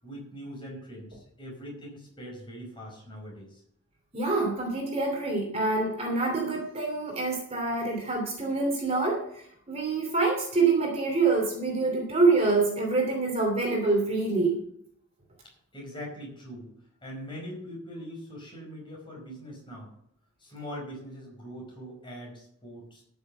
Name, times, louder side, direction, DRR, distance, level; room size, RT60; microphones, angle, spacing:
voice 1, 0.0-3.6 15.7-16.7 17.0-19.9 20.4-23.0, equal, 20° left, -2 dB, 5.1 m, -42 dB
voice 2, 4.1-14.6, right 3 dB, 30° right, 0 dB, 2.8 m, -26 dB
13.0 x 6.8 x 6.7 m, 0.69 s
head